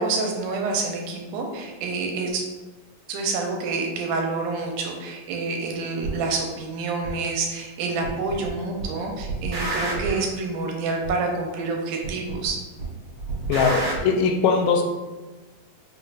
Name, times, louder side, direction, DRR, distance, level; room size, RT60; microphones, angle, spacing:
voice 1, 0.0-2.5 3.1-12.6, right 3 dB, 80° right, 1 dB, 2.1 m, -28 dB
sound 1, 6.0-6.2 7.0-7.1 8.0-8.5 8.8-10.3 11.0-11.1 12.0-12.5 12.8-14.0, right 3 dB, 60° right, 2.0 m, -29 dB
voice 2, 13.5-14.8, left 5 dB, 85° left, 4 dB, 2.2 m, -20 dB
5.6 x 3.3 x 2.4 m, 1.2 s
omnidirectional pair, 3.8 m